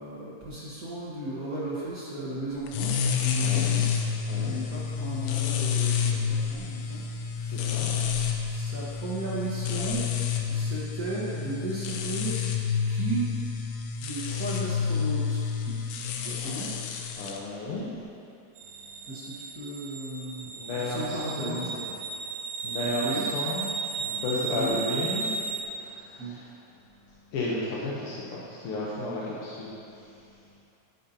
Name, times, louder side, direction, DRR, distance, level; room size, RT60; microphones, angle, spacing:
voice 1, 0.0-3.9 4.3-7.9 8.4-10.1 10.5-12.4 12.9-13.3 14.0-16.9 19.0-22.0 23.0-23.3 24.5-24.8 26.2-26.4, right 2 dB, 50° right, -8 dB, 1.0 m, -35 dB
sound 1, 2.7-17.4, left 7 dB, 80° left, 2.2 m, -29 dB
voice 2, 3.4-3.7 4.3-4.5 7.7-7.9 17.2-17.9 20.6-21.7 22.6-25.3 25.7-26.4 27.3-29.8, left 2 dB, 65° left, -6 dB, 1.4 m, -33 dB
sound 2, 18.6-25.6, right 5 dB, 85° right, 2.2 m, -34 dB
10.5 x 9.5 x 2.8 m, 2.6 s
omnidirectional pair, 3.6 m